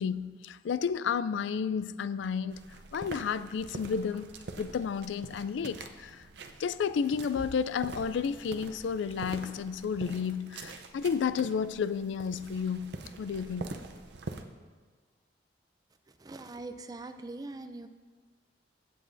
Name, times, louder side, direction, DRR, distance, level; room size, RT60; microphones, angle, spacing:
voice 1, 0.0-2.7 2.9-6.2 6.6-13.7, left 6 dB, 90° left, 0.3 m, -32 dB
sound 1, 2.5-14.4, right 3 dB, 75° right, 0.6 m, -45 dB
voice 2, 16.2-17.9, right 2 dB, 20° right, 0.4 m, -42 dB
16.5 x 7.6 x 2.6 m
head